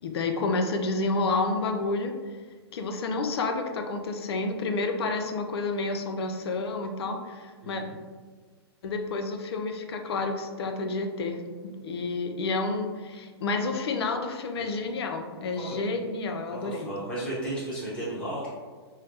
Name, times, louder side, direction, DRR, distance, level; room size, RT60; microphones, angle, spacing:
voice 1, 0.0-2.1 2.7-7.8 8.8-16.9, left 3 dB, 65° left, 5 dB, 0.4 m, -30 dB
voice 2, 7.6-7.9 14.6-14.7 15.6-15.8 16.5-18.5, right 1 dB, 5° left, -10 dB, 1.0 m, -34 dB
3.1 x 2.0 x 2.8 m, 1.5 s
hypercardioid pair, 130°, 14 cm